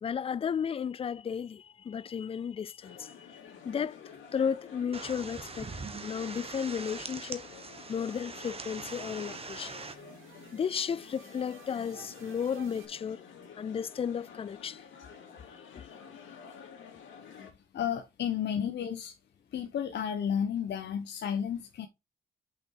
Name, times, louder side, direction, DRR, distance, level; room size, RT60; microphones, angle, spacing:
voice 1, 0.0-4.0 4.3-5.7 6.0-7.5 7.9-9.8 10.5-13.2 13.5-14.8 15.7-15.9 17.4-17.5, left 7 dB, 30° left, 0.3 m, -34 dB
sound 1, 2.8-17.5, left 7 dB, 75° left, 2.7 m, -51 dB
sound 2, 4.9-9.9, right 4 dB, 30° right, 1.3 m, -42 dB
sound 3, 6.7-12.9, right 9 dB, 85° right, 1.6 m, -56 dB
voice 2, 17.7-19.2 19.5-21.9, left 8 dB, 60° left, 1.0 m, -32 dB
6.3 x 5.7 x 4.5 m
cardioid pair, 90°, 20 cm